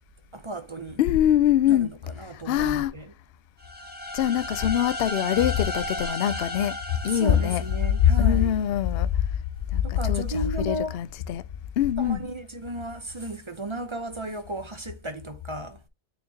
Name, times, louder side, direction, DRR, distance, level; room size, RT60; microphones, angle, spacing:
voice 1, 0.3-1.0 1.7-3.1 7.1-8.5 9.8-10.9 12.0-15.8, right 1 dB, 30° right, 0.7 m, -34 dB
voice 2, 1.0-1.9 2.5-2.9 4.1-6.7 7.0-7.6 8.2-9.1 9.7-11.4 11.8-12.2, left 10 dB, 65° left, 0.7 m, -23 dB
sound 1, 3.6-8.4, left 1 dB, 10° right, 1.2 m, -35 dB
8.8 x 4.4 x 2.8 m
omnidirectional pair, 1.2 m